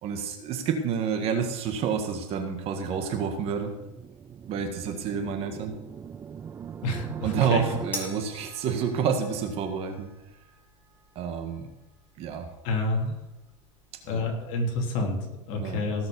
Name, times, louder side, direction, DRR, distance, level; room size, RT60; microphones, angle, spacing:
voice 1, 0.0-3.7 4.5-5.8 7.2-10.1 11.2-11.7 12.2-12.5 14.1-14.2 15.5-15.9, right 6 dB, 35° right, 5 dB, 1.7 m, -29 dB
sound 1, 3.5-7.9, right 7 dB, 15° right, 0.4 m, -41 dB
voice 2, 6.8-7.6 12.6-13.1 14.0-16.1, left 2 dB, 50° left, 1 dB, 3.2 m, -28 dB
sound 2, 7.9-14.5, left 1 dB, 10° left, 2.1 m, -45 dB
17.0 x 5.8 x 7.1 m, 0.97 s
supercardioid pair, 150°, 17 cm